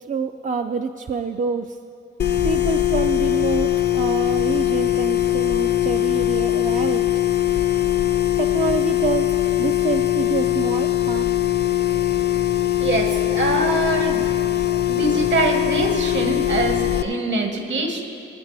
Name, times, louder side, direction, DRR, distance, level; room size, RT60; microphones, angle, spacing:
voice 1, 0.1-1.8 2.4-7.1 8.4-9.3 9.6-11.3, right 5 dB, 40° right, 6 dB, 0.4 m, -27 dB
sound 1, 2.2-17.0, left 13 dB, 50° left, 0.5 m, -21 dB
voice 2, 12.8-14.3 14.9-18.0, right 2 dB, 60° right, 3 dB, 1.7 m, -23 dB
22.5 x 8.0 x 3.4 m, 2.8 s
cardioid pair, 80°, 21 cm